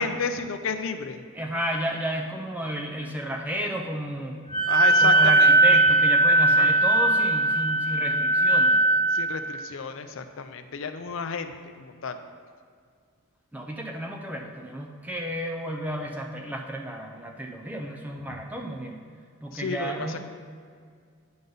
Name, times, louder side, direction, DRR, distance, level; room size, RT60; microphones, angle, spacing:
voice 1, 0.0-1.2 4.6-5.8 6.5-6.7 9.1-12.2 18.3-18.4 19.5-20.2, left 5 dB, 60° left, 9 dB, 0.5 m, -32 dB
voice 2, 1.3-4.4 4.9-8.8 13.5-19.0 19.4-20.2, right 1 dB, 5° right, 1 dB, 0.5 m, -32 dB
Wind instrument woodwind instrument, 4.5-9.2, right 1 dB, 40° left, 1.1 m, -19 dB
9.4 x 5.3 x 3.9 m, 2.1 s
head